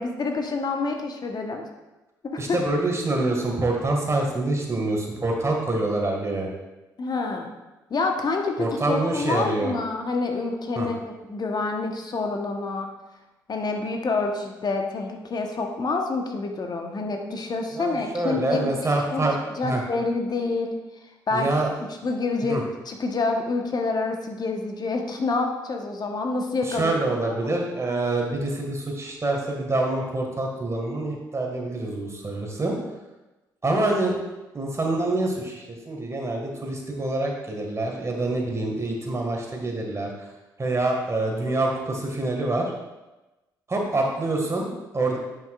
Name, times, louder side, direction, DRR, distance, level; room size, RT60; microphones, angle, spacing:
voice 1, 0.0-1.7 2.3-2.6 7.0-7.5 7.9-12.9 13.5-18.7 19.1-19.2 19.6-20.7 21.3-21.5 22.0-22.6 22.9-26.9, left 3 dB, 40° left, 3 dB, 1.1 m, -27 dB
voice 2, 2.4-6.5 8.6-9.7 10.8-10.9 17.7-19.3 19.6-19.8 21.3-21.7 22.4-22.6 26.6-32.7 33.6-34.1 34.5-40.1 40.6-42.7 43.7-45.2, right 2 dB, 30° right, 0 dB, 1.9 m, -26 dB
9.5 x 5.7 x 2.5 m, 1.1 s
hypercardioid pair, 45°, 10 cm